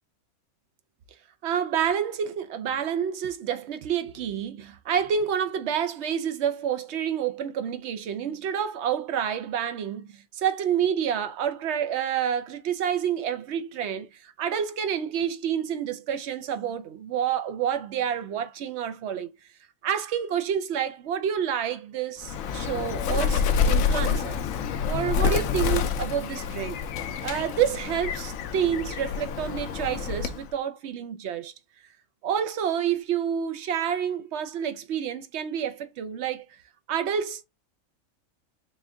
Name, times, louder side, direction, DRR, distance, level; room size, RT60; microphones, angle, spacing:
voice 1, 1.4-19.3 19.8-24.4 24.9-26.8 27.2-31.5 32.2-36.4 36.9-37.4, right 8 dB, 60° right, 0.8 m, -28 dB
Bird, 22.2-30.5, left 6 dB, 75° left, 1.0 m, -27 dB
4.3 x 2.4 x 3.4 m
omnidirectional pair, 1.4 m